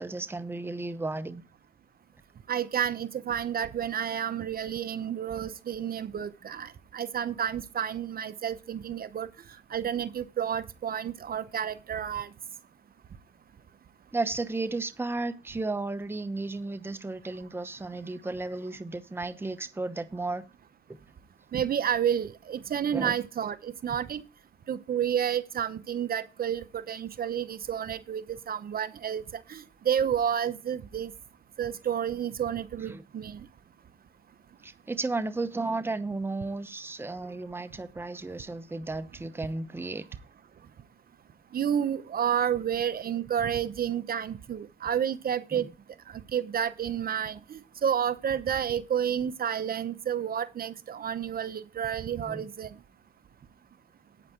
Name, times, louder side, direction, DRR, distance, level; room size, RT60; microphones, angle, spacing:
voice 1, 0.0-1.4 14.1-20.4 20.9-21.0 22.9-23.2 32.8-33.1 34.6-40.1 45.5-45.7 52.2-52.4, right 3 dB, 10° right, 0.8 m, -34 dB
voice 2, 2.5-9.3 9.7-12.3 21.5-24.2 24.7-31.1 31.6-33.4 41.5-45.7 46.1-52.7, right 9 dB, 50° right, 0.8 m, -30 dB
9.0 x 8.9 x 4.5 m
cardioid pair, 90°, 20 cm